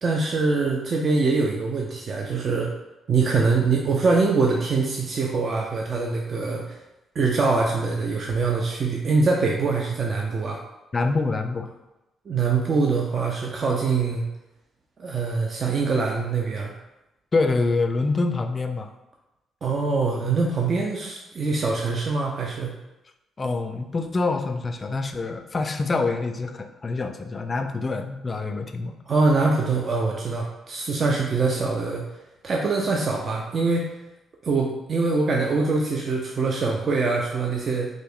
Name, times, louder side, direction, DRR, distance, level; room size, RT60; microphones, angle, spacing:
voice 1, 0.0-2.7 3.1-6.8 7.2-10.6 12.3-14.2 15.0-16.7 19.6-22.7 29.1-32.0 32.4-33.8 34.4-37.9, right 4 dB, 45° right, 0 dB, 0.4 m, -23 dB
voice 2, 10.9-11.7 17.3-18.9 23.4-29.0, left 3 dB, 30° left, 7 dB, 0.3 m, -26 dB
3.1 x 2.5 x 3.5 m, 0.95 s
cardioid pair, 90°, 0 cm